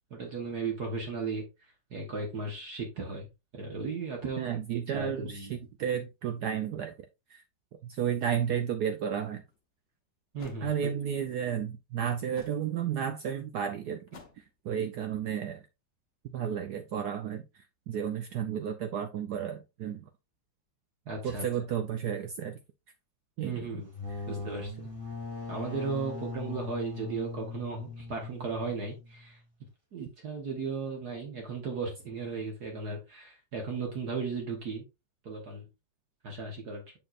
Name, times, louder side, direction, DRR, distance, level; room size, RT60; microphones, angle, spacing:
voice 1, 0.1-1.4 1.9-3.3 3.5-4.5 4.9-5.6 10.3-10.9 21.1-21.4 23.4-23.9 24.3-24.8 25.5-29.4 29.9-34.8 35.2-35.7 36.2-36.8, right 4 dB, 50° right, 1.6 m, -36 dB
voice 2, 4.4-6.9 7.3-7.4 7.8-9.4 10.6-15.6 16.2-20.1 21.2-22.6 23.4-23.6 24.1-24.3, right 8 dB, 80° right, 0.9 m, -33 dB
sound 1, 9.5-9.6 10.4-10.7 12.3-12.7 14.1-14.5, left 5 dB, 50° left, 0.7 m, -50 dB
sound 2, 23.8-29.3, left 3 dB, 10° right, 3.1 m, -40 dB
7.1 x 5.7 x 2.5 m
omnidirectional pair, 2.3 m